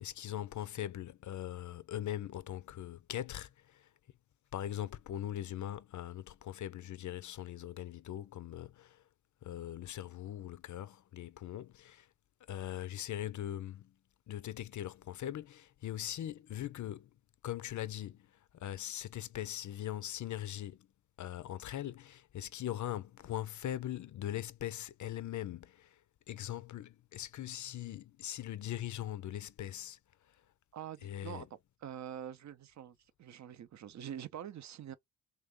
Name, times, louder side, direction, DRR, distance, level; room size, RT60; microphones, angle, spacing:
voice 1, 0.0-3.9 4.5-9.0 9.4-12.1 12.5-13.9 14.3-17.1 17.4-18.3 18.5-20.8 21.2-26.0 26.3-30.0 31.0-31.5, left 12 dB, 55° left, 0.5 m, -41 dB
voice 2, 30.7-35.0, right 9 dB, 55° right, 0.6 m, -45 dB
3.4 x 2.6 x 3.6 m
cardioid pair, 85°, 35 cm